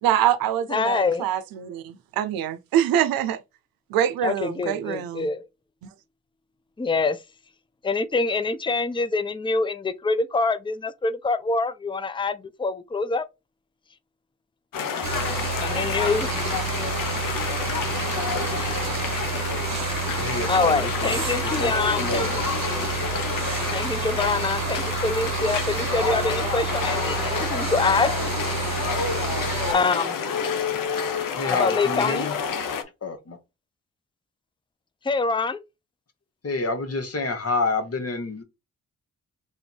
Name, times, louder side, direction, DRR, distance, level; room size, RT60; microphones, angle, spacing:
voice 1, 0.0-3.4 3.9-5.3, right 10 dB, 85° right, 0.6 m, -24 dB
voice 2, 0.7-1.3 4.2-5.4 6.8-7.2 7.8-13.2 15.6-16.3 20.5-22.3 23.7-28.1 29.7-30.1 31.6-32.3 35.1-35.6, left 3 dB, 15° left, 0.6 m, -25 dB
sound 1, 14.7-32.8, left 6 dB, 70° left, 0.9 m, -28 dB
sound 2, 15.0-29.7, right 8 dB, 50° right, 0.9 m, -30 dB
voice 3, 20.2-21.2 21.4-22.3 31.4-32.4 33.0-33.4 36.4-38.4, left 3 dB, 45° left, 1.4 m, -28 dB
3.5 x 2.6 x 4.4 m
supercardioid pair, 45°, 35 cm